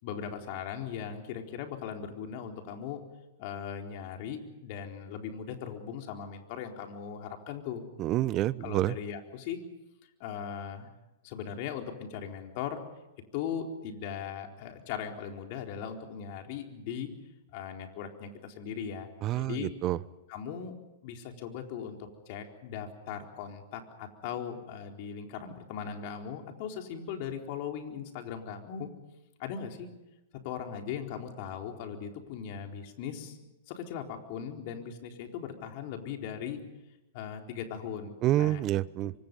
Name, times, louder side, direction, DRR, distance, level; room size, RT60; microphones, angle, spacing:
voice 1, 0.0-3.0 3.4-7.8 8.6-9.6 10.2-10.9 11.2-12.8 13.3-17.1 17.5-19.1 19.3-19.7 20.3-20.7 21.0-28.9 29.4-29.9 30.4-33.4 33.7-36.6 37.1-38.6, left 8 dB, 50° left, 3 dB, 4.2 m, -39 dB
voice 2, 8.0-8.9 19.2-20.0 38.2-39.1, right 14 dB, 35° right, 19 dB, 0.8 m, -28 dB
27.5 x 25.0 x 5.5 m, 0.97 s
hypercardioid pair, 110°, 0 cm